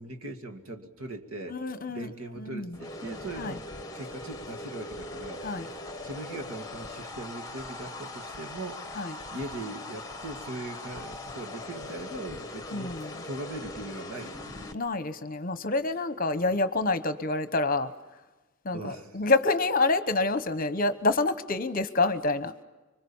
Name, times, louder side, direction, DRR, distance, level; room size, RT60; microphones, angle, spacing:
voice 1, 0.0-1.6 1.9-3.7 3.9-8.8 9.3-14.6 18.7-19.2, right 2 dB, 70° right, 6 dB, 2.3 m, -40 dB
voice 2, 1.5-2.1 2.4-2.7 3.4-3.6 5.4-5.7 9.0-9.2 12.7-13.2 14.7-17.9 18.6-22.5, left 3 dB, 40° left, 11 dB, 1.0 m, -27 dB
sound 1, 2.7-14.7, left 2 dB, 15° left, 1.4 m, -40 dB
25.5 x 24.0 x 7.2 m, 1.2 s
head